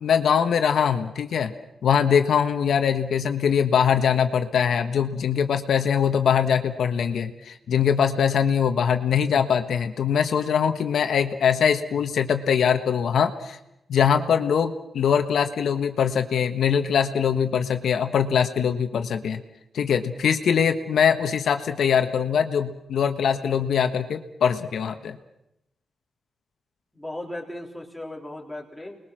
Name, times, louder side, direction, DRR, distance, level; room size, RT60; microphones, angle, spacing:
voice 1, 0.0-1.5 1.8-13.6 13.9-19.4 19.7-25.2, left 7 dB, 75° left, 7 dB, 1.3 m, -22 dB
voice 2, 26.9-29.0, left 1 dB, ahead, -1 dB, 3.4 m, -36 dB
29.5 x 21.0 x 6.3 m, 0.85 s
wide cardioid pair, 170°, 0 cm